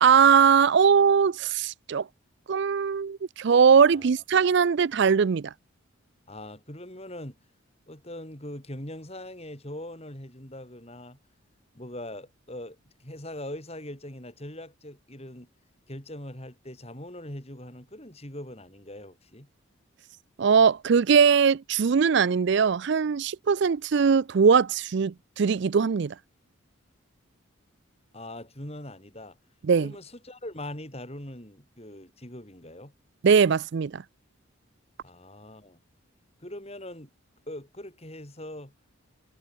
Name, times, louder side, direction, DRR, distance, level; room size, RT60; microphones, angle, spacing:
voice 1, 0.0-2.1 2.5-5.5 20.4-26.1 29.6-29.9 33.2-34.0, right 6 dB, 55° right, 0.4 m, -21 dB
voice 2, 6.3-7.4 7.9-11.2 11.7-15.5 15.9-19.5 28.1-29.4 29.8-32.9 35.0-35.8 36.4-37.1 37.5-38.7, left 1 dB, 30° left, 4.9 m, -41 dB
head